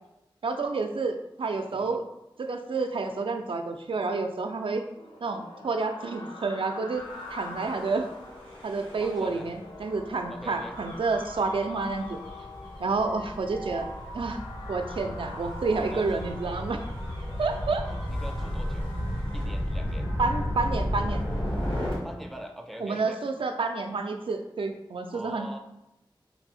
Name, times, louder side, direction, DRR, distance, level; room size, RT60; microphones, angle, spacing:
voice 1, 0.4-2.0 2.4-4.9 5.2-8.1 8.6-12.2 12.8-13.9 14.1-14.4 14.7-16.8 17.4-17.9 20.2-21.2 22.8-25.6, right 3 dB, 80° right, 5 dB, 0.4 m, -29 dB
sound 1, 5.0-20.0, left 1 dB, 65° left, 0.7 m, -44 dB
Gull seagull / Waves surf / Siren, 7.2-21.9, equal, 85° left, 1.3 m, -34 dB
voice 2, 9.0-9.5 10.3-10.8 15.9-16.3 17.2-17.3 17.9-18.9 19.3-20.1 22.0-23.3 25.1-25.6, equal, ahead, 4 dB, 0.4 m, -42 dB
3.2 x 2.6 x 4.1 m, 0.89 s
wide cardioid pair, 70°, 9 cm